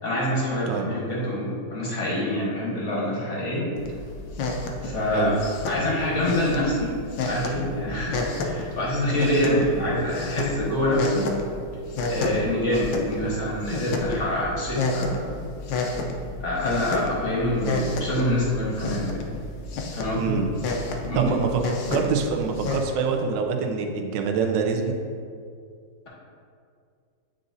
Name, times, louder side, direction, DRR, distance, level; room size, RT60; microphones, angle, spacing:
voice 1, 0.0-3.6 4.8-5.4 5.7-11.3 12.1-15.3 16.4-19.1 19.9-20.4 21.1-21.4, left 1 dB, 40° left, -5 dB, 1.5 m, -26 dB
sound 1, 3.8-22.8, left 2 dB, 85° left, 1.4 m, -31 dB
voice 2, 20.1-20.5 21.1-21.5 21.9-24.9, right 5 dB, 75° right, 3 dB, 1.3 m, -25 dB
9.2 x 3.9 x 2.6 m, 2.3 s
omnidirectional pair, 2.1 m